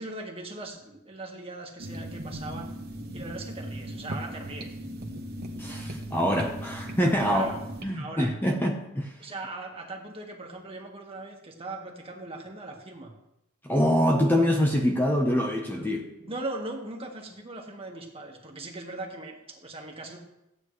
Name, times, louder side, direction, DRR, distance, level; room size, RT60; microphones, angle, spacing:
voice 1, 0.0-2.7 3.1-4.7 7.3-7.6 7.9-8.3 9.2-13.1 16.2-20.2, right 2 dB, 30° right, 1 dB, 1.6 m, -39 dB
sound 1, 1.8-7.8, right 1 dB, 50° right, 1.2 m, -37 dB
voice 2, 5.6-7.5 7.8-9.1 13.6-16.1, equal, 10° left, 1 dB, 0.9 m, -25 dB
15.0 x 8.9 x 3.2 m, 0.88 s
head